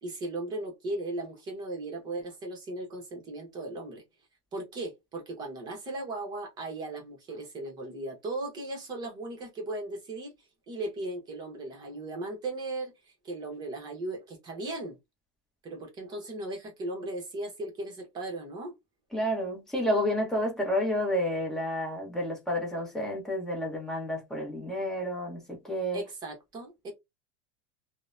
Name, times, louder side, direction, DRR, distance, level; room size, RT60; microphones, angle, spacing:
voice 1, 0.0-4.0 4.5-10.3 10.7-12.9 13.2-15.0 15.6-18.7 25.9-26.9, right 2 dB, 25° right, 0.9 m, -37 dB
voice 2, 19.1-26.0, equal, 5° left, 0.9 m, -30 dB
2.7 x 2.1 x 2.3 m
supercardioid pair, 155°, 16 cm